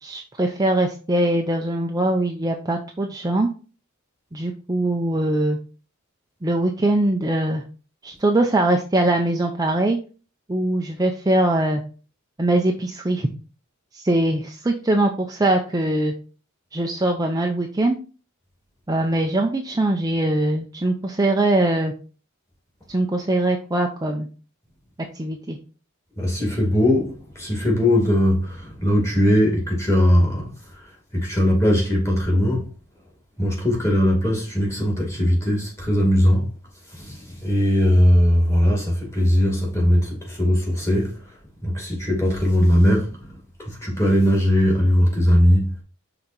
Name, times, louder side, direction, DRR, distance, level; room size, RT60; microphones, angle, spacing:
voice 1, 0.0-3.5 4.3-5.6 6.4-7.6 8.0-10.0 10.5-11.8 12.4-13.3 13.9-16.1 16.7-18.0 18.9-21.9 22.9-24.3 25.1-25.6, right 1 dB, 20° right, 0.5 m, -22 dB
voice 2, 26.2-30.5 31.1-32.7 33.4-36.5 36.9-41.1 41.6-43.1 43.8-45.7, equal, 15° left, 2.3 m, -19 dB
5.6 x 3.9 x 4.4 m
head